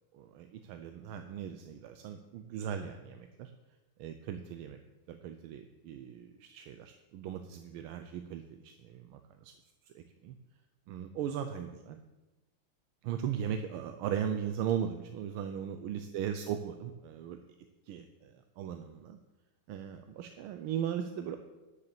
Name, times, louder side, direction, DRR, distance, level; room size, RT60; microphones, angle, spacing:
voice 1, 0.1-3.5 4.0-4.8 5.1-9.5 9.9-10.3 10.9-12.0 13.0-17.4 17.9-19.2 19.7-21.4, right 9 dB, 85° right, 7 dB, 1.5 m, -38 dB
9.7 x 6.9 x 6.8 m, 1.1 s
omnidirectional pair, 2.3 m